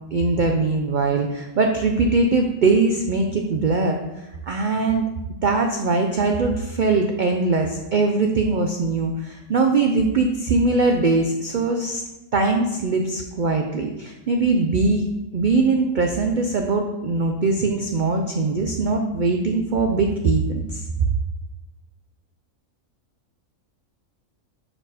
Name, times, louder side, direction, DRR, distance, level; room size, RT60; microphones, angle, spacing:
voice 1, 0.1-4.0 4.5-5.0 5.4-12.0 12.3-15.0 15.3-21.1, right 3 dB, 85° right, 3 dB, 0.4 m, -21 dB
4.9 x 4.5 x 4.8 m, 0.99 s
omnidirectional pair, 1.5 m